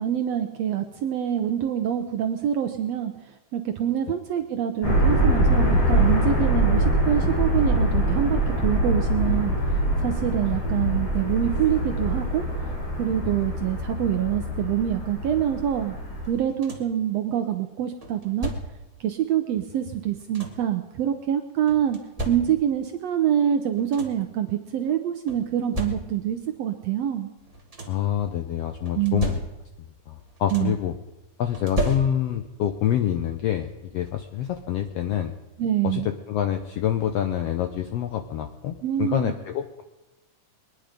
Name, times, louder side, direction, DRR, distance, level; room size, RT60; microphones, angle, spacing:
voice 1, 0.0-12.4 13.0-15.9 16.3-18.5 19.0-22.0 22.2-27.3 28.9-29.2 30.5-30.7 35.6-36.1 38.8-39.3, right 10 dB, 75° right, 7 dB, 1.5 m, -25 dB
sound 1, 4.8-16.3, right 1 dB, 50° left, 5.7 m, -24 dB
Opening and closing an oven, 16.2-17.0 18.0-19.0 19.9-20.8 21.7-22.9 23.4-23.5 23.7-24.4 25.3-26.4 27.4-28.1 28.9-29.9 30.2-30.9 31.5-32.5 33.8-33.9 34.4-34.6, right 1 dB, 30° right, 0.7 m, -34 dB
voice 2, 27.9-29.4 30.1-30.9 31.4-35.3 35.8-39.8, left 10 dB, 80° left, 7 dB, 1.4 m, -26 dB
22.0 x 10.0 x 5.1 m, 0.99 s
omnidirectional pair, 3.7 m